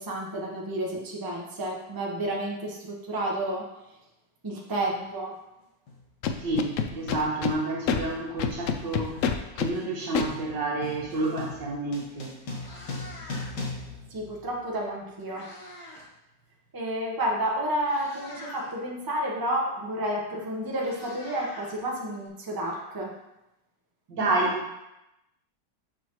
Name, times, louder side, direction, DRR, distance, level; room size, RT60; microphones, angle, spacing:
voice 1, 0.0-3.6 4.4-5.3 14.1-15.4 16.7-23.1, right 1 dB, 15° right, -2 dB, 0.9 m, -30 dB
sound 1, 4.8-4.9 5.9-6.1 6.4-15.0, left 3 dB, 65° left, 1.8 m, -41 dB
Scratching (performance technique), 6.2-7.5 7.9-8.0 8.4-9.7 10.2-10.3, left 7 dB, 90° left, 0.7 m, -26 dB
voice 2, 6.4-9.2 9.6-12.6 24.1-24.8, right 2 dB, 75° right, -3 dB, 2.1 m, -29 dB
Meow, 12.4-13.7 14.8-16.1 16.4-16.7 17.4-17.5 17.8-18.7 20.0-20.1 20.4-22.3, left 1 dB, 20° left, 1.2 m, -45 dB
6.7 x 6.6 x 3.1 m, 0.89 s
omnidirectional pair, 2.0 m